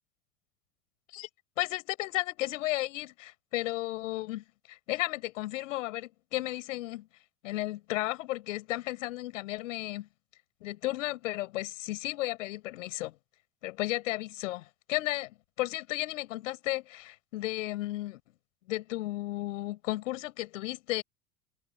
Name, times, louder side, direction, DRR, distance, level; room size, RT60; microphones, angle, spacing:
voice 1, 1.6-7.1 7.4-10.1 10.6-13.2 13.6-18.2 18.7-21.0, left 17 dB, 60° left, 6.3 m, -34 dB
figure-of-eight pair, 75°, 42 cm